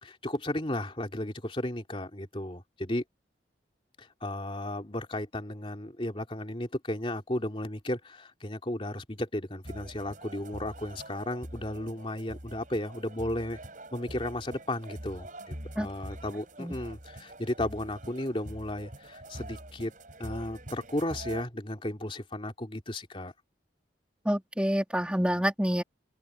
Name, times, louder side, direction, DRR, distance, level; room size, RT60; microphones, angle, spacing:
voice 1, 0.0-3.0 4.0-13.6 13.9-19.9 20.2-23.3, left 1 dB, 30° left, 3.1 m, -34 dB
sound 1, 9.6-21.4, right 1 dB, 45° right, 7.7 m, -45 dB
voice 2, 24.2-25.8, equal, 5° right, 3.3 m, -27 dB
open air
head